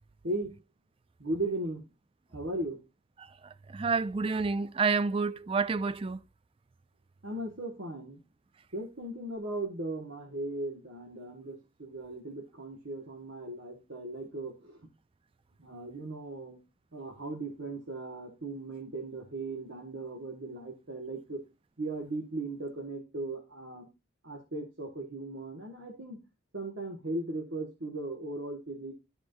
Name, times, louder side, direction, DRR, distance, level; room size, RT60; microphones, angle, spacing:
voice 1, 0.2-0.6 1.2-1.8 2.3-2.8 7.2-8.2 8.7-14.8 15.6-16.6 16.9-21.4 21.8-23.9 24.2-26.2 26.5-28.9, right 2 dB, 70° right, 1.7 m, -37 dB
voice 2, 3.7-6.2, right 4 dB, 25° right, 0.4 m, -29 dB
13.0 x 4.8 x 2.6 m
head